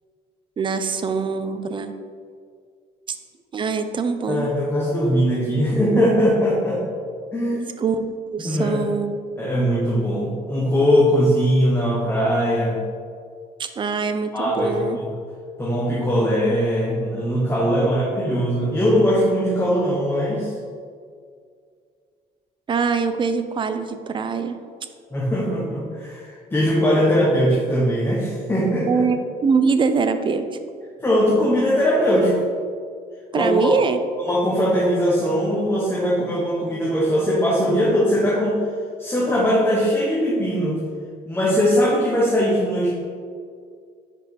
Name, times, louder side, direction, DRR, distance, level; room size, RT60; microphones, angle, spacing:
voice 1, 0.6-1.9 3.1-3.2 3.5-4.5 7.8-9.2 13.6-15.0 17.8-17.9 22.7-24.6 28.8-30.5 33.3-34.0, right 5 dB, 30° right, 9 dB, 0.5 m, -23 dB
voice 2, 4.3-6.8 7.3-7.7 8.4-8.8 9.4-12.8 14.3-15.1 15.6-20.5 25.1-29.0 31.0-32.4 33.3-33.8 34.2-38.6 39.0-40.8 41.3-42.9, equal, 15° left, -6 dB, 1.2 m, -20 dB
5.0 x 4.9 x 4.7 m, 2.1 s
cardioid pair, 110°, 17 cm